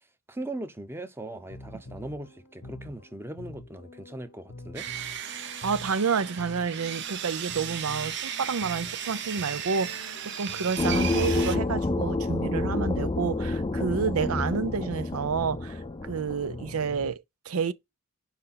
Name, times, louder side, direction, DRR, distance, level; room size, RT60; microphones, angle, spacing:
voice 1, 0.3-4.9, right 1 dB, 10° right, 0.8 m, -39 dB
sound 1, 1.2-17.2, left 2 dB, 70° left, 0.8 m, -47 dB
Sawing, 4.8-11.6, right 9 dB, 55° right, 0.7 m, -36 dB
voice 2, 5.6-17.7, right 5 dB, 90° right, 0.6 m, -29 dB
sound 2, 10.8-17.1, left 2 dB, 20° left, 0.4 m, -29 dB
5.2 x 4.5 x 5.6 m
head